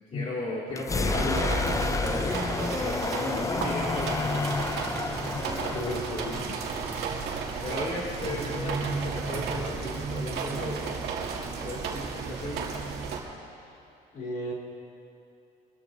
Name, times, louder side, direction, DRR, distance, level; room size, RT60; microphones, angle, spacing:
voice 1, 0.1-4.6 5.9-6.0 6.5-6.6 7.6-11.0 11.6-12.7, left 1 dB, 40° left, -5 dB, 2.2 m, -36 dB
sound 1, 0.7-8.4, left 4 dB, 20° left, 0.5 m, -31 dB
voice 2, 0.9-1.4 5.6-6.4 8.3-8.4 8.7-8.8 14.1-14.5, left 2 dB, 55° left, -3 dB, 3.4 m, -35 dB
sound 2, 1.0-13.2, right 5 dB, 75° right, 2.3 m, -33 dB
25.0 x 13.0 x 2.6 m, 2.8 s
cardioid pair, 110°, 17 cm